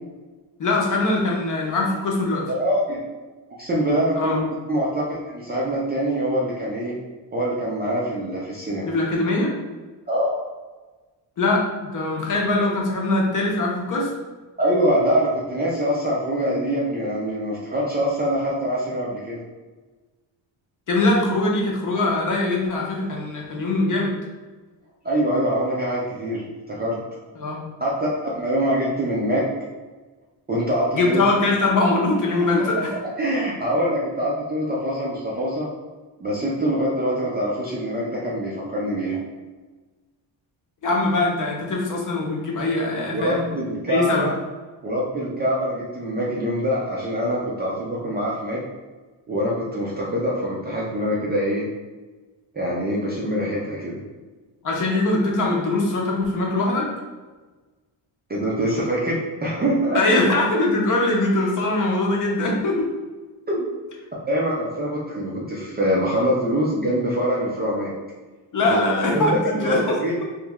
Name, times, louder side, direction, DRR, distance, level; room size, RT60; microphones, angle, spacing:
voice 1, 0.6-2.5 4.2-4.4 8.9-9.5 11.4-14.1 20.9-24.2 27.4-27.6 30.9-32.9 40.8-43.4 43.9-44.3 54.6-56.9 59.9-62.9 68.5-70.2, left 2 dB, 40° left, -1 dB, 0.7 m, -22 dB
voice 2, 2.5-3.1 3.6-4.4 4.7-6.9 7.3-8.9 10.1-10.4 14.6-19.4 25.0-27.0 27.8-29.5 30.5-31.2 32.6-32.8 33.2-35.7 36.2-39.2 43.1-44.3 44.8-48.6 49.3-51.7 52.5-54.0 58.3-60.0 63.5-63.7 64.3-67.9 68.7-68.8 69.1-70.1, equal, 20° right, -5 dB, 0.4 m, -24 dB
3.1 x 3.0 x 3.5 m, 1.3 s
cardioid pair, 180°, 48 cm